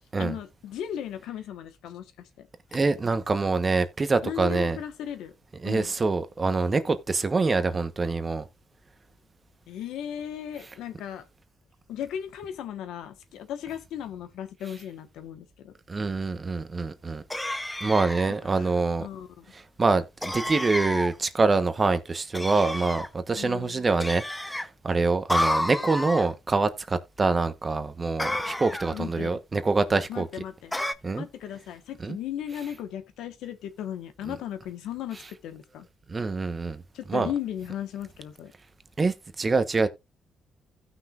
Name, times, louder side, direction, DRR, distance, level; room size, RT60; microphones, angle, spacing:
voice 1, 0.2-2.5 4.2-5.3 5.6-5.9 9.7-11.2 11.9-15.7 18.5-19.4 23.3-23.8 28.9-29.4 30.1-30.7 31.1-35.9 36.9-38.5, left 10 dB, 85° left, 1.3 m, -36 dB
voice 2, 2.7-4.8 5.6-8.4 15.9-17.2 17.8-19.1 19.8-30.3 31.0-31.2 32.0-32.2 36.1-36.8 37.1-37.3 39.0-39.9, right 3 dB, 30° right, 1.1 m, -25 dB
sound 1, 17.3-18.4 20.2-21.1 22.3-23.1 24.0-24.7 25.3-26.3 28.2-29.0 30.7-30.9, left 1 dB, 10° left, 0.7 m, -30 dB
16.0 x 6.0 x 2.5 m
cardioid pair, 90°, 0 cm